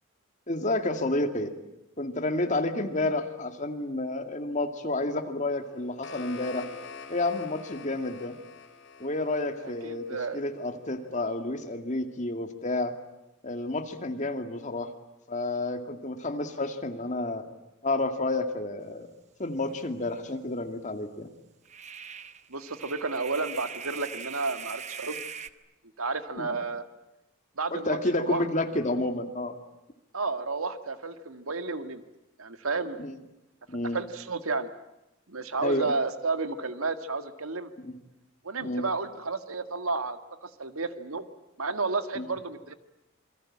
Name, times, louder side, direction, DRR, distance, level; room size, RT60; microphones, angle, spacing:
voice 1, 0.5-1.5 2.0-6.7 7.1-8.3 9.0-10.1 10.3-12.9 13.4-14.9 15.3-17.5 17.8-19.1 19.4-21.3 26.4-26.5 27.7-29.5 33.0-33.2 33.7-34.0 35.6-35.9 37.8-38.0 38.6-38.8 42.2-42.3, left 2 dB, 35° left, 6 dB, 2.3 m, -30 dB
sound 1, 5.6-10.7, left 5 dB, 60° left, 4.5 m, -46 dB
voice 2, 9.6-10.4 22.5-25.2 26.0-26.9 27.6-28.5 30.1-32.0 32.4-33.0 33.9-34.7 35.3-37.7 38.4-41.3 41.6-42.7, right 3 dB, 90° right, 9 dB, 1.8 m, -32 dB
sound 2, 19.7-19.8 20.1-20.2 21.6-25.5, right 7 dB, 35° right, 1.0 m, -41 dB
28.0 x 22.5 x 8.8 m, 0.94 s
head